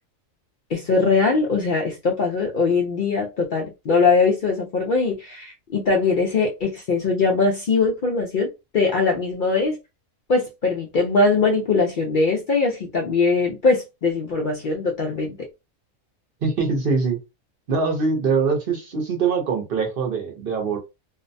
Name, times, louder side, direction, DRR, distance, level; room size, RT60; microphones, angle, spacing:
voice 1, 0.7-9.8 10.3-15.5, left 4 dB, 70° left, 0.4 m, -21 dB
voice 2, 16.4-17.2 17.7-20.8, right 4 dB, 50° right, 0.7 m, -23 dB
2.5 x 2.1 x 2.5 m
omnidirectional pair, 1.4 m